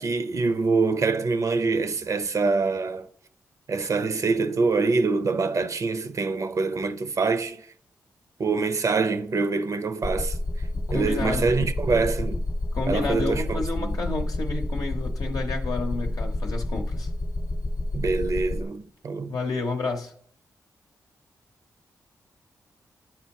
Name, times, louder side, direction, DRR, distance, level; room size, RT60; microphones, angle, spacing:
voice 1, 0.0-3.1 3.7-7.7 8.4-10.4 10.9-12.5 12.9-14.0 17.9-19.3, right 4 dB, 55° right, 0.5 m, -25 dB
sound 1, 10.0-18.6, left 1 dB, 35° left, 0.8 m, -29 dB
voice 2, 10.7-11.5 12.7-17.1 19.3-20.1, left 3 dB, 70° left, 0.7 m, -30 dB
11.5 x 4.4 x 2.8 m
cardioid pair, 55°, 7 cm